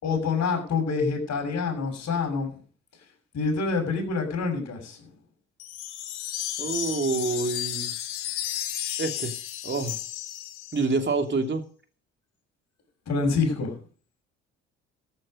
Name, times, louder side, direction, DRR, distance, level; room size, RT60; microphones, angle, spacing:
voice 1, 0.0-2.5 3.3-5.1 13.1-13.8, left 4 dB, 50° left, 3 dB, 6.5 m, -26 dB
sound 1, 5.6-11.0, left 12 dB, 85° left, 1.4 m, -33 dB
voice 2, 6.6-7.9 9.0-9.3 9.6-10.0 10.7-11.6, right 3 dB, 35° right, 5 dB, 2.7 m, -27 dB
14.5 x 8.9 x 5.3 m, 0.41 s
hypercardioid pair, 55°, 34 cm